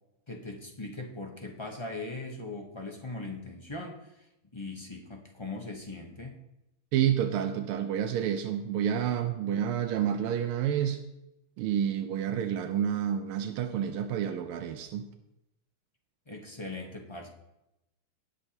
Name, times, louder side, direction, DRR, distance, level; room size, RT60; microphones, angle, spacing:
voice 1, 0.3-4.3 4.5-6.4 16.3-17.3, left 2 dB, 40° left, 1 dB, 0.4 m, -40 dB
voice 2, 6.9-11.0 11.6-15.1, right 9 dB, 90° right, 6 dB, 1.5 m, -29 dB
18.5 x 6.8 x 2.9 m, 0.90 s
omnidirectional pair, 2.3 m